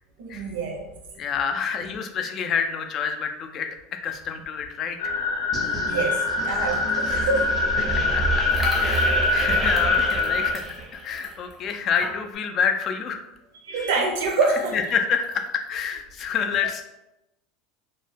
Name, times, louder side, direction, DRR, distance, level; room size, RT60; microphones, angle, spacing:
voice 1, 0.2-0.9 5.7-7.5 9.1-9.2 13.6-14.8, right 3 dB, 90° right, 1 dB, 0.6 m, -26 dB
voice 2, 1.2-5.1 7.8-10.6 10.9-13.2 13.7-13.9 14.7-16.8, left 6 dB, 40° left, 6 dB, 0.3 m, -28 dB
sound 1, 5.0-10.5, left 4 dB, 90° left, 0.6 m, -24 dB
sound 2, 5.5-11.2, right 4 dB, 30° right, 0.4 m, -30 dB
sound 3, 8.5-12.5 12.9-13.0 13.2-13.3 14.2-15.9, left 2 dB, 10° left, 0.8 m, -39 dB
2.2 x 2.0 x 3.2 m, 0.90 s
supercardioid pair, 125°, 0 cm